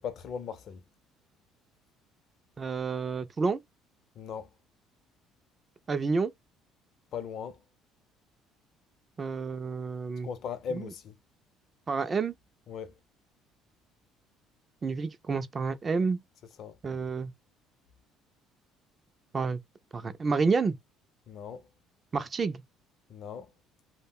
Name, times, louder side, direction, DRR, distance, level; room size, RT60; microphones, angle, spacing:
voice 1, 0.0-0.8 4.2-4.5 7.1-7.6 10.2-11.2 12.7-13.0 16.4-16.8 21.3-21.7 23.1-23.5, left 7 dB, 45° left, 0.5 m, -38 dB
voice 2, 2.6-3.6 5.9-6.3 9.2-10.3 11.9-12.3 14.8-16.2 16.8-17.3 19.3-19.6 19.9-20.8 22.1-22.6, right 4 dB, 20° right, 0.3 m, -29 dB
2.2 x 2.1 x 3.5 m
cardioid pair, 165°, 0 cm